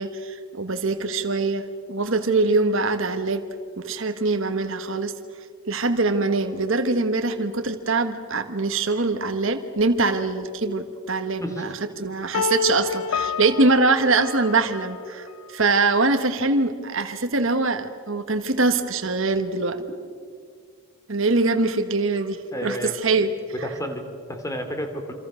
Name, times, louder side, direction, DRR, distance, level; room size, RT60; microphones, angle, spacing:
voice 1, 0.0-3.4 3.8-5.1 5.7-19.8 21.1-23.3, right 3 dB, 60° right, 7 dB, 1.4 m, -23 dB
sound 1, 12.3-15.3, left 6 dB, 85° left, 0.6 m, -28 dB
voice 2, 22.5-23.0 23.6-25.1, equal, 15° left, 6 dB, 2.8 m, -31 dB
27.5 x 26.0 x 6.4 m, 2.1 s
head